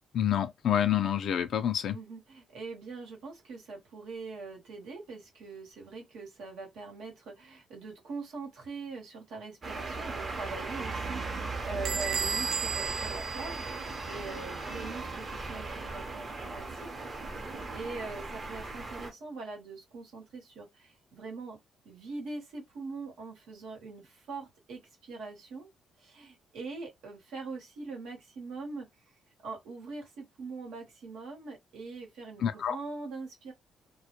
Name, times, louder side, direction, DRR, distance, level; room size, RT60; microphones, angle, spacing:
voice 1, 0.1-2.0 32.4-32.8, left 10 dB, 70° left, 0.3 m, -27 dB
voice 2, 1.9-16.9 17.4-21.6 21.8-25.7 26.0-28.9 29.4-33.5, right 3 dB, 85° right, 1.0 m, -42 dB
sound 1, 9.6-19.1, right 3 dB, 40° right, 0.7 m, -38 dB
Bell / Squeak, 11.8-14.4, right 6 dB, 70° right, 0.3 m, -34 dB
2.1 x 2.0 x 2.9 m
cardioid pair, 90°, 0 cm